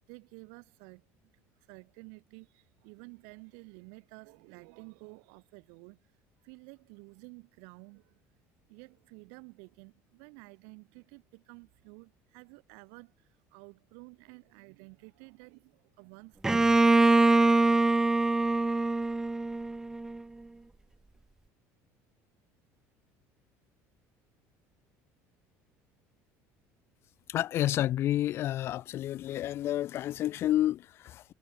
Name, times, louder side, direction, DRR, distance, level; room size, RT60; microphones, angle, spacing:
voice 1, 0.1-1.3 1.6-6.1 6.4-8.2 8.7-17.3, right 40 dB or more, 85° right, 7.7 m, -52 dB
Bowed string instrument, 16.4-20.2, right 2 dB, 10° right, 0.4 m, -24 dB
voice 2, 27.3-31.2, left 13 dB, 40° left, 0.7 m, -30 dB
cardioid pair, 160°, 6 cm